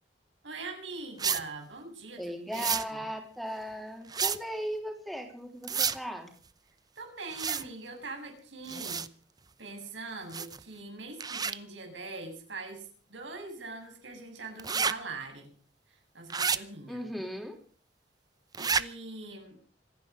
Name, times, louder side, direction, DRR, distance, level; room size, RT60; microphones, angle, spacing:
voice 1, 0.4-3.0 7.0-9.1 9.6-15.5 15.9-17.3 18.6-19.6, right 3 dB, 90° right, 3 dB, 7.4 m, -42 dB
sound 1, 1.2-1.4 2.5-2.8 4.1-4.4 5.6-6.0 7.3-7.6 8.7-9.1 10.3-10.6 11.2-11.5 14.6-14.9 16.3-16.6 18.5-18.8, right 6 dB, 20° right, 0.8 m, -29 dB
voice 2, 2.2-6.3 16.9-17.6, equal, ahead, 3 dB, 3.6 m, -37 dB
25.5 x 10.5 x 5.3 m, 0.42 s
head